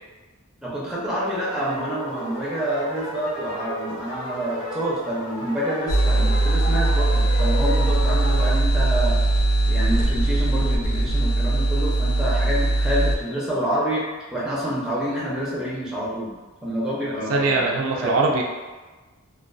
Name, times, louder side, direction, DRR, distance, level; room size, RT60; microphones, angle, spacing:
voice 1, 0.6-9.2 9.7-14.0 14.3-16.3 16.6-17.7 18.0-18.2, equal, 5° right, -7 dB, 0.5 m, -27 dB
sound 1, 1.2-8.6, equal, 65° left, 1.0 m, -34 dB
sound 2, 5.9-13.1, right 2 dB, 85° left, 0.4 m, -20 dB
voice 2, 17.0-18.4, right 3 dB, 65° right, 1 dB, 0.3 m, -22 dB
2.5 x 2.3 x 2.2 m, 1.3 s
head